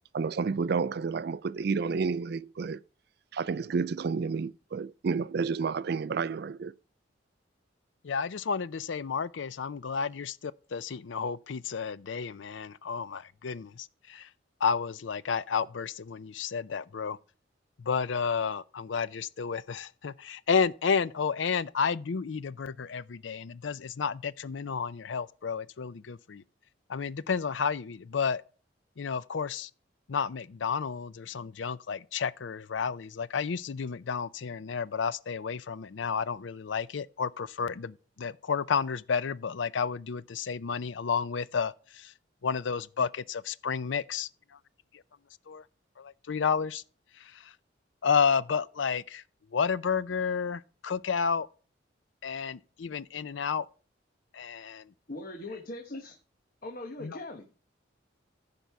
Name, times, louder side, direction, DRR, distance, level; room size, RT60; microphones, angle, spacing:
voice 1, 0.1-2.8 3.3-6.7, right 5 dB, 55° right, 0.4 m, -30 dB
voice 2, 8.0-14.3 14.6-17.2 17.8-26.4 26.9-28.4 29.0-29.7 30.1-42.1 42.4-44.3 45.5-45.6 46.0-46.8 47.2-47.5 48.0-49.2 49.5-51.5 52.2-53.7 54.3-54.9 57.0-57.2, left 6 dB, 80° left, 0.5 m, -31 dB
voice 3, 55.1-56.2 56.6-57.6, left 2 dB, 50° left, 1.1 m, -40 dB
14.5 x 5.3 x 4.7 m
head